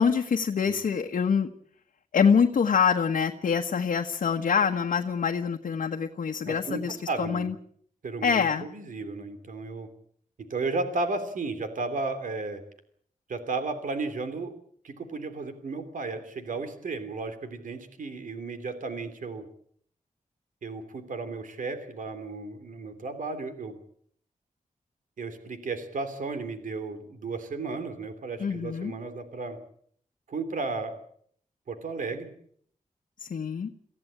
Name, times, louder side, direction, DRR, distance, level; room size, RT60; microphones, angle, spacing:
voice 1, 0.0-1.5 2.1-7.5 8.2-8.7 28.4-28.9 33.2-33.7, left 6 dB, 75° left, 3 dB, 1.3 m, -25 dB
voice 2, 6.4-7.5 8.0-9.9 10.5-12.6 13.3-14.5 14.8-19.4 20.6-23.8 25.2-29.6 30.3-31.0 31.7-32.3, right 3 dB, 75° right, 9 dB, 3.1 m, -34 dB
24.0 x 15.5 x 8.8 m, 0.64 s
wide cardioid pair, 135°, 14 cm